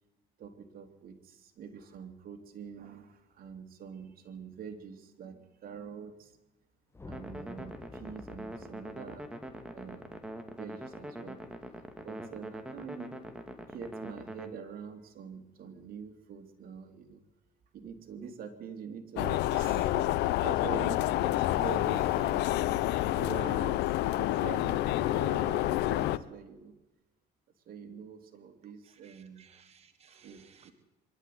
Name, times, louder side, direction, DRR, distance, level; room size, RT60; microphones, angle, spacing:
voice 1, 0.4-3.1 3.4-6.3 7.1-9.2 9.7-10.1 10.6-11.4 12.0-13.2 13.7-17.2 17.7-22.6 23.1-23.8 24.1-26.7 27.7-29.4 30.2-30.7, right 6 dB, 60° right, 6 dB, 3.1 m, -44 dB
sound 1, 6.9-11.3, left 3 dB, 15° left, 1.4 m, -51 dB
sound 2, 7.1-14.5, right 1 dB, 5° right, 2.4 m, -43 dB
sound 3, 19.2-26.2, left 15 dB, 85° left, 0.8 m, -28 dB
voice 2, 28.9-30.7, right 7 dB, 40° right, 8 dB, 1.5 m, -60 dB
24.0 x 12.0 x 9.5 m, 1.0 s
cardioid pair, 110°, 17 cm